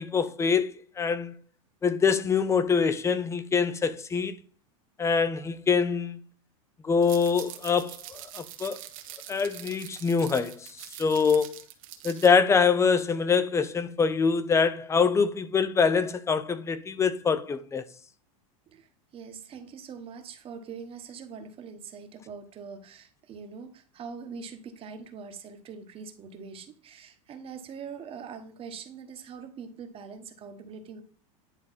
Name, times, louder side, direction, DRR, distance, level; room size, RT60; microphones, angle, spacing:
voice 1, 0.0-1.3 1.8-4.4 5.0-6.2 6.8-8.8 9.3-10.7 11.0-11.5 12.0-17.8, left 5 dB, 15° left, 0.6 m, -24 dB
sound 1, 7.0-12.3, right 12 dB, 75° right, 1.2 m, -44 dB
voice 2, 19.1-31.0, right 6 dB, 35° right, 1.2 m, -43 dB
10.0 x 3.4 x 4.1 m
supercardioid pair, 120°, 17 cm